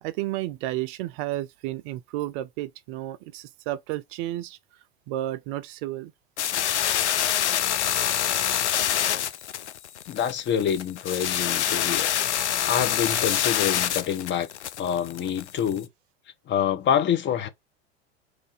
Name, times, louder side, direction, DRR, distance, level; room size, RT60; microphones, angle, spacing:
voice 1, 0.0-4.6 5.1-6.1, right 15 dB, 50° right, 0.5 m, -32 dB
sound 1, 6.4-15.8, left 10 dB, 90° left, 0.5 m, -26 dB
voice 2, 10.1-12.1 12.6-14.5 14.8-15.9 16.5-17.5, left 8 dB, 35° left, 0.8 m, -26 dB
3.2 x 2.6 x 3.8 m
hypercardioid pair, 90°, 33 cm